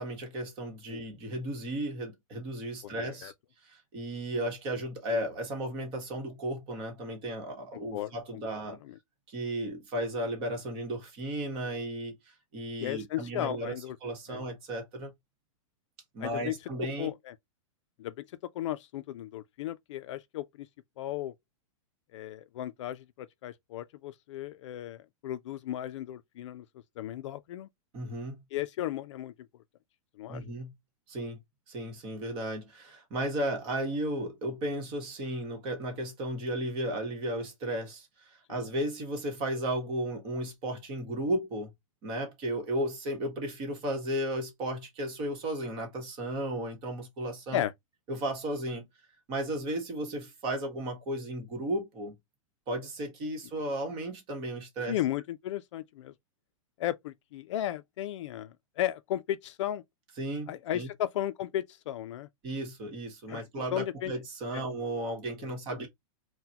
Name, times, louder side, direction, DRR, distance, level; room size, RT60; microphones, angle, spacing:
voice 1, 0.0-3.3 3.6-8.8 9.3-13.7 14.0-15.1 16.1-17.1 27.9-28.4 30.3-30.7 31.1-31.4 31.7-41.7 42.0-47.6 48.1-48.9 49.3-52.1 52.7-55.0 60.2-60.9 62.4-65.9, right 1 dB, 30° right, 1.2 m, -34 dB
voice 2, 2.8-3.3 7.7-8.6 8.8-8.9 12.8-14.0 14.3-14.4 16.2-16.5 17.0-17.3 18.0-18.1 18.5-20.7 21.0-21.3 22.1-26.6 27.0-27.7 28.5-29.3 30.2-30.4 38.5-38.6 47.5-47.7 54.9-56.1 56.8-59.8 60.5-62.3 63.3-63.4 63.7-64.1 64.5-64.6 65.4-65.5, left 12 dB, 60° left, 0.4 m, -35 dB
3.7 x 2.2 x 2.8 m
supercardioid pair, 155°, 17 cm